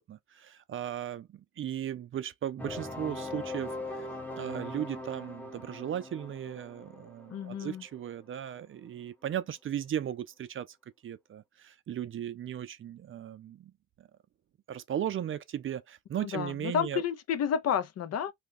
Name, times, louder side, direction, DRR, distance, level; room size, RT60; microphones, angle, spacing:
voice 1, 0.0-4.1 4.4-10.8 11.0-13.7 14.0-14.1 14.7-17.0, right 10 dB, 45° right, 0.4 m, -37 dB
sound 1, 2.6-8.2, left 1 dB, 5° left, 0.7 m, -40 dB
voice 2, 7.3-7.8 16.2-18.3, left 8 dB, 55° left, 0.6 m, -31 dB
2.8 x 2.3 x 3.6 m
cardioid pair, 90°, 30 cm